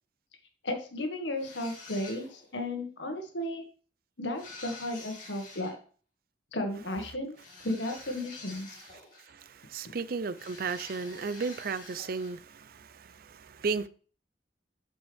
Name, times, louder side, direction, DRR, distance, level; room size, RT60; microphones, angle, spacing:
voice 1, 0.6-3.6 4.2-5.8 6.5-7.4 7.6-8.7, left 1 dB, 90° left, 1.7 m, -34 dB
sound 1, 1.4-2.5 4.3-5.7 7.3-9.4 10.4-12.4, left 3 dB, 50° left, 2.4 m, -48 dB
voice 2, 9.3-13.9, right 4 dB, 55° right, 0.5 m, -34 dB
11.0 x 5.3 x 3.5 m
head